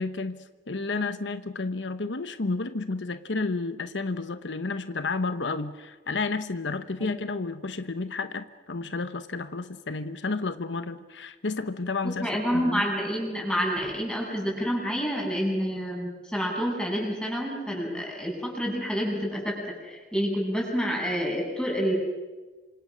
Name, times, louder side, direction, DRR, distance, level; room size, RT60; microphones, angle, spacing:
voice 1, 0.0-12.8 17.9-18.1, left 3 dB, 80° left, 11 dB, 1.1 m, -31 dB
voice 2, 12.0-19.6 19.8-21.9, equal, 5° left, -1 dB, 7.6 m, -28 dB
27.5 x 26.5 x 6.4 m, 1.3 s
head